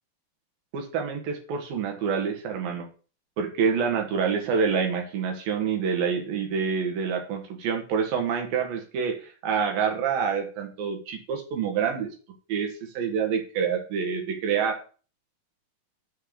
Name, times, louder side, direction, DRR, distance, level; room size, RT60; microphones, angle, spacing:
voice 1, 0.7-2.9 3.4-12.1 12.5-14.8, right 6 dB, 80° right, 3 dB, 3.3 m, -27 dB
6.9 x 4.4 x 6.3 m, 0.38 s
omnidirectional pair, 4.1 m